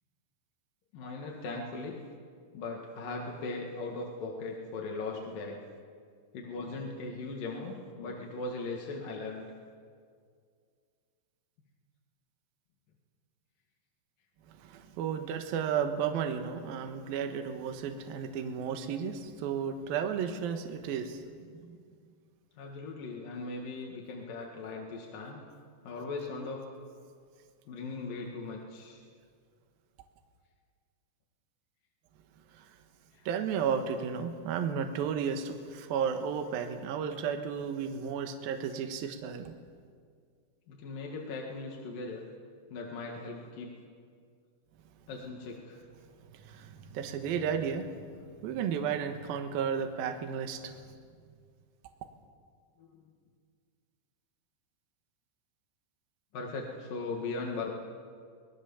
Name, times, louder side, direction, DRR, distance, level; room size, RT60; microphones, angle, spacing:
voice 1, 0.9-2.0 2.5-5.6 6.3-9.4 22.6-25.4 25.8-26.6 27.7-29.0 33.1-33.3 40.7-42.2 42.7-43.7 45.1-45.8 52.8-53.0 56.3-57.7, left 3 dB, 55° left, 0 dB, 3.2 m, -39 dB
voice 2, 14.5-21.8 32.5-32.7 33.3-39.5 46.3-48.0 48.4-50.8, right 7 dB, 65° right, 6 dB, 2.8 m, -33 dB
25.0 x 19.5 x 7.1 m, 2.1 s
omnidirectional pair, 5.1 m